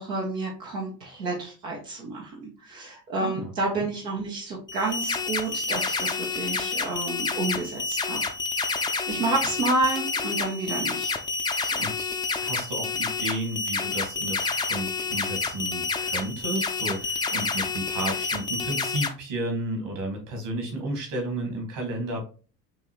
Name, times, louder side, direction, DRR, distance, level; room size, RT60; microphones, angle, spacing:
voice 1, 0.0-8.2 9.1-11.1 11.6-11.7, right 2 dB, 85° right, -3 dB, 0.9 m, -30 dB
voice 2, 3.2-3.9 11.4-22.2, right 1 dB, 55° right, 2 dB, 1.9 m, -33 dB
sound 1, 4.7-19.1, left 4 dB, 10° left, 0.4 m, -29 dB
5.5 x 2.9 x 3.0 m, 0.37 s
figure-of-eight pair, 55°, 49 cm